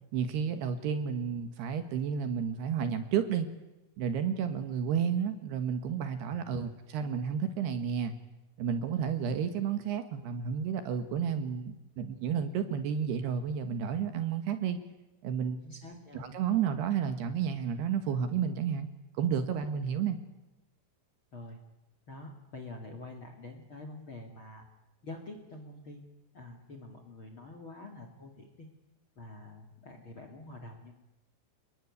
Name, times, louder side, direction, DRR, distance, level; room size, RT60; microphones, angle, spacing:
voice 1, 0.1-3.5 4.0-8.1 8.6-14.8 15.2-15.6 16.1-18.9 19.2-20.2, right 7 dB, 65° right, 9 dB, 3.2 m, -31 dB
voice 2, 15.6-16.3 21.3-21.6 22.1-24.7 25.0-26.0 26.3-28.7 29.2-31.1, left 2 dB, 40° left, 6 dB, 2.0 m, -46 dB
29.5 x 20.0 x 9.6 m, 1.0 s
omnidirectional pair, 5.6 m